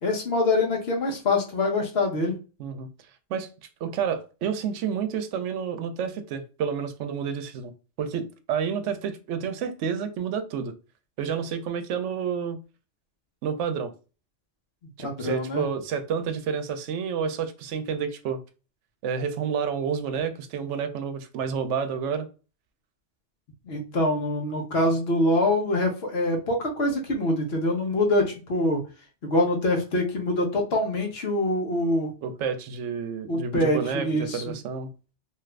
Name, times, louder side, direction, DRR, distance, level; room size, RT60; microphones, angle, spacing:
voice 1, 0.0-2.3 15.0-15.6 23.6-28.8 29.2-32.1 33.3-34.6, left 1 dB, 60° left, 1.1 m, -24 dB
voice 2, 3.8-7.7 8.0-10.7 11.2-12.6 13.4-13.9 15.0-18.4 19.0-22.3 32.2-34.9, right 7 dB, 80° right, 0.9 m, -29 dB
2.9 x 2.4 x 3.2 m
omnidirectional pair, 1.2 m